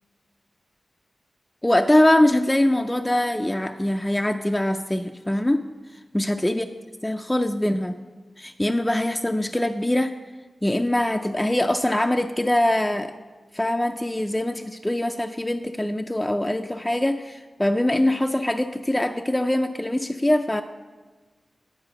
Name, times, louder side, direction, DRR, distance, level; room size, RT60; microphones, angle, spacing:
voice 1, 1.6-5.7 6.1-6.7 7.0-8.0 8.4-10.1 10.6-13.1 13.5-20.6, left 1 dB, 10° left, 5 dB, 0.3 m, -23 dB
9.9 x 4.8 x 6.7 m, 1.4 s
wide cardioid pair, 110°, 0 cm